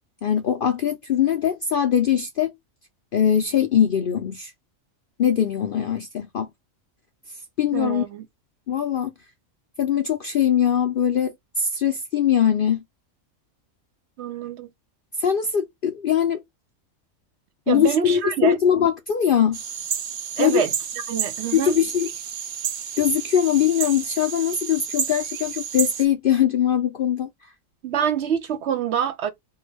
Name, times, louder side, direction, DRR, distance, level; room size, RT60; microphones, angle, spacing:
voice 1, 0.2-2.5 3.1-4.5 5.2-6.5 7.6-8.0 8.7-9.1 9.8-12.8 15.2-16.4 17.7-19.6 20.4-20.6 21.5-22.1 23.0-27.3, left 9 dB, 65° left, 0.5 m, -21 dB
voice 2, 7.7-8.3 14.2-14.7 17.7-18.6 20.4-20.7 21.1-21.8 27.8-29.3, right 8 dB, 65° right, 0.8 m, -25 dB
sound 1, 19.5-26.0, right 8 dB, 85° right, 0.4 m, -31 dB
4.6 x 2.2 x 3.3 m
omnidirectional pair, 1.4 m